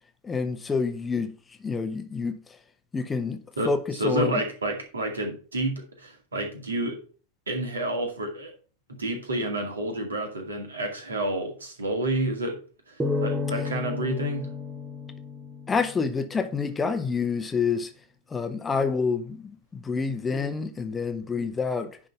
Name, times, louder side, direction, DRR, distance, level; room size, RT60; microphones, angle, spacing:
voice 1, 0.2-1.3 1.6-2.4 2.9-3.4 3.6-4.4 15.7-17.9 18.3-22.0, left 5 dB, 15° left, 0.9 m, -28 dB
voice 2, 3.6-7.0 7.5-8.5 9.0-12.6 12.9-14.5, right 1 dB, 70° right, 2.2 m, -29 dB
sound 1, 13.0-16.4, left 4 dB, 10° right, 0.9 m, -32 dB
10.5 x 3.8 x 5.4 m
figure-of-eight pair, 90°, 0 cm